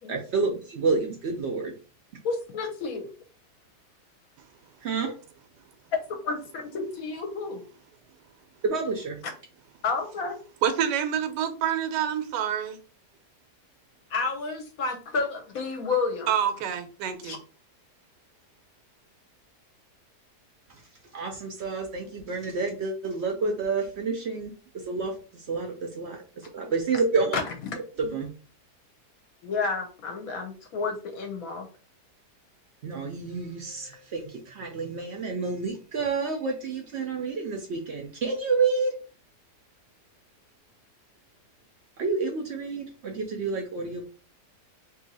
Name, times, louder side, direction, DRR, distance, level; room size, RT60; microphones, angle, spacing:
voice 1, 0.1-1.7 4.8-5.1 8.6-9.2 20.7-20.8 21.1-24.5 24.8-27.4 28.0-28.3 32.8-38.9 42.0-44.1, right 4 dB, 65° right, 3 dB, 0.6 m, -29 dB
voice 2, 2.2-3.1 6.2-7.6 9.8-10.4 14.1-16.3 17.2-17.4 27.3-27.4 29.4-31.7, left 4 dB, 65° left, 4 dB, 1.0 m, -30 dB
voice 3, 10.6-12.8 16.3-17.3, right 9 dB, 85° right, 8 dB, 1.2 m, -27 dB
2.8 x 2.7 x 3.9 m, 0.38 s
omnidirectional pair, 1.8 m